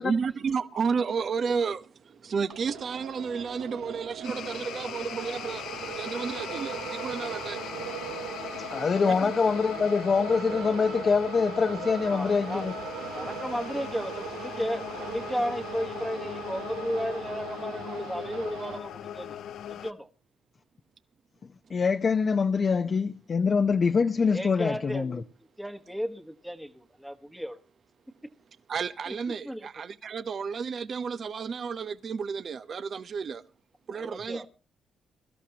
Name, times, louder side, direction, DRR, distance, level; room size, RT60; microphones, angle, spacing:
voice 1, 0.0-7.6 9.0-9.3 28.7-33.4 33.9-34.5, right 5 dB, 50° right, 0.8 m, -32 dB
sound 1, 2.5-18.8, right 11 dB, 90° right, 0.8 m, -40 dB
sound 2, 4.2-19.9, left 10 dB, 75° left, 0.7 m, -39 dB
voice 2, 8.7-12.7 21.7-25.2, left 5 dB, 40° left, 0.8 m, -24 dB
voice 3, 12.1-12.6 13.1-19.4 19.7-20.1 24.3-25.3 25.6-27.6 29.1-29.2 29.4-29.7 33.9-34.5, equal, 5° right, 1.3 m, -34 dB
22.5 x 13.0 x 2.8 m
cardioid pair, 90°, 0 cm